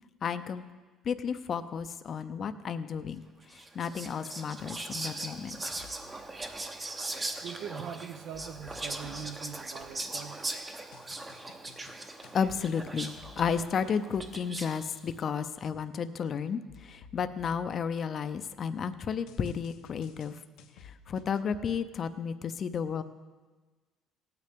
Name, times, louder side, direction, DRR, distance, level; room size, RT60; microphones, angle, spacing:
voice 1, 0.2-0.6 1.0-3.2 3.5-5.6 12.3-20.4 20.8-23.0, left 6 dB, 40° left, 10 dB, 0.5 m, -32 dB
Whispering, 3.5-14.9, right 2 dB, 20° right, 0.8 m, -40 dB
sound 1, 5.7-6.3 8.3-10.2 10.9-14.6 16.7-18.5 19.3-21.5, left 6 dB, 85° left, 0.9 m, -54 dB
voice 2, 7.4-10.5, right 8 dB, 65° right, 10 dB, 0.6 m, -42 dB
17.5 x 9.2 x 3.6 m, 1.3 s
cardioid pair, 130°, 0 cm